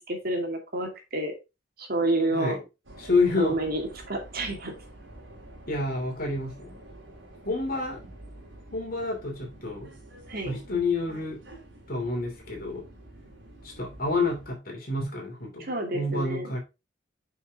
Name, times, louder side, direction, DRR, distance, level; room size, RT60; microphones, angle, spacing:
voice 1, 0.1-1.3 1.8-2.6 3.4-4.7 10.3-10.6 15.6-16.5, right 2 dB, 55° right, 2.3 m, -29 dB
sound 1, 2.8-14.5, right 1 dB, 80° right, 2.8 m, -48 dB
voice 2, 3.0-3.6 5.7-6.8 7.4-8.0 8.7-9.9 10.4-11.4 11.9-12.8 13.6-15.7 15.9-16.6, left 3 dB, 50° left, 2.9 m, -28 dB
7.0 x 5.7 x 3.5 m
head